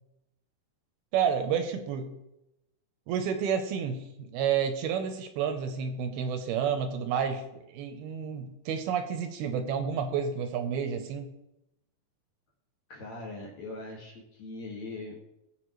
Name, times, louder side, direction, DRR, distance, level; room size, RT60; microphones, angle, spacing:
voice 1, 1.1-2.1 3.1-11.3, right 7 dB, 75° right, 6 dB, 2.6 m, -30 dB
voice 2, 12.9-15.2, left 2 dB, 50° left, -2 dB, 2.8 m, -41 dB
19.5 x 7.3 x 3.1 m, 0.89 s
omnidirectional pair, 4.7 m